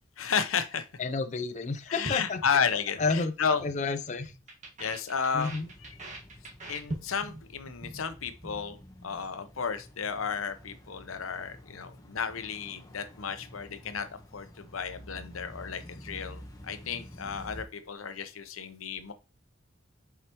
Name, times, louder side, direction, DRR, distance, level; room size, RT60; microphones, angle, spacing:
voice 1, 0.2-0.8 1.9-3.6 4.8-5.5 6.7-8.8 9.0-14.1 14.3-19.1, left 6 dB, 90° left, 10 dB, 0.8 m, -32 dB
voice 2, 1.0-2.6 3.0-3.3 3.6-4.3 5.3-5.7, left 4 dB, 35° left, 8 dB, 0.5 m, -31 dB
sound 1, 2.0-3.2 3.4-3.8 4.0-7.4 7.7-8.0 8.3-8.6, right 1 dB, 35° right, 1.6 m, -41 dB
sound 2, 5.4-17.6, left 1 dB, 20° left, 1.1 m, -50 dB
7.7 x 4.8 x 3.0 m, 0.31 s
head